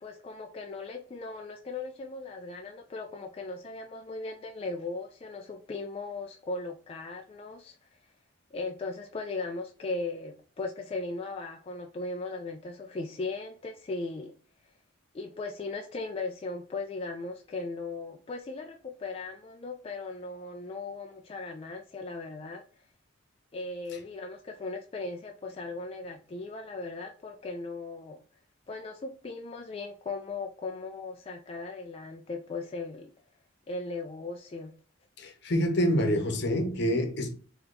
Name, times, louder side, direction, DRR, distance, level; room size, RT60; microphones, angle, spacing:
voice 1, 0.0-8.0 8.5-14.3 15.1-22.6 23.5-28.2 28.7-33.1 33.7-34.7, left 3 dB, 30° left, 0.3 m, -38 dB
voice 2, 35.2-37.3, equal, 60° left, 0.9 m, -27 dB
3.8 x 2.9 x 3.8 m
head